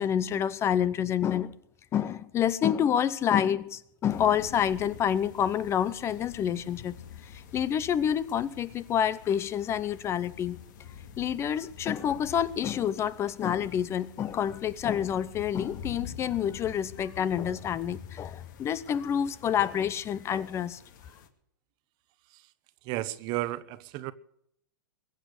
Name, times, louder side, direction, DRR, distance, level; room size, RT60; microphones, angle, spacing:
voice 1, 0.0-1.5 1.9-6.9 7.5-10.6 11.2-20.8, left 9 dB, 25° left, 0.7 m, -28 dB
sound 1, 4.1-21.3, left 8 dB, 60° left, 2.4 m, -47 dB
voice 2, 22.8-24.1, right 16 dB, 40° right, 1.1 m, -33 dB
22.0 x 8.1 x 6.6 m
hypercardioid pair, 130°, 11 cm